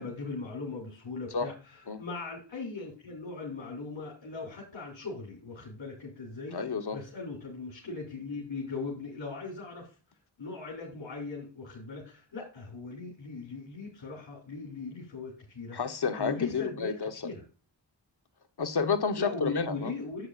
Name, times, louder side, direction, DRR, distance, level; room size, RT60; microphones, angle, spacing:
voice 1, 0.0-6.6 6.9-9.9 10.4-15.8 16.2-16.9 17.2-17.4 19.2-20.3, left 4 dB, 85° left, 2.7 m, -39 dB
voice 2, 6.5-7.0 15.7-17.3 18.6-19.9, left 5 dB, 60° left, 1.1 m, -30 dB
9.5 x 8.1 x 2.5 m
cardioid pair, 45°, 45 cm